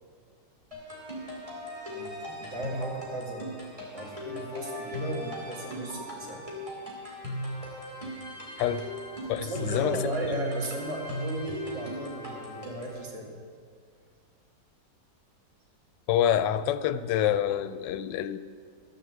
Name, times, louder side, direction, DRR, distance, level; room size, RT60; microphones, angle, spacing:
sound 1, 0.7-13.0, equal, 20° right, 2.4 m, -38 dB
voice 1, 1.9-3.5 3.9-6.4 8.4-8.5 9.4-13.3, right 1 dB, 85° right, -3 dB, 2.9 m, -36 dB
voice 2, 9.3-10.1 16.1-18.4, left 10 dB, 90° left, 13 dB, 1.2 m, -27 dB
13.0 x 6.9 x 7.6 m, 2.1 s
omnidirectional pair, 1.9 m